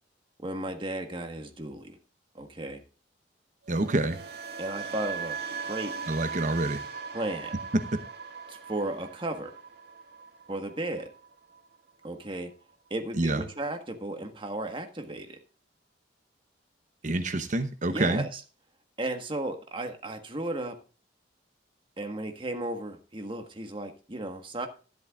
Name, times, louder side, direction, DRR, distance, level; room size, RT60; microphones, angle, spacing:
voice 1, 0.4-2.0 2.3-2.8 4.6-5.4 5.7-6.0 7.1-7.6 8.5-9.6 10.5-11.1 12.0-12.5 12.9-15.4 17.9-18.4 19.0-20.8 22.0-24.7, right 1 dB, 30° right, 5 dB, 1.5 m, -34 dB
sound 1, 3.6-11.8 12.0-12.4, right 6 dB, 60° right, 2.0 m, -39 dB
voice 2, 3.7-4.2 6.1-6.8 7.7-8.0 13.1-13.4 17.0-18.2, right 2 dB, 45° right, 9 dB, 0.9 m, -27 dB
13.0 x 12.0 x 2.4 m, 0.35 s
head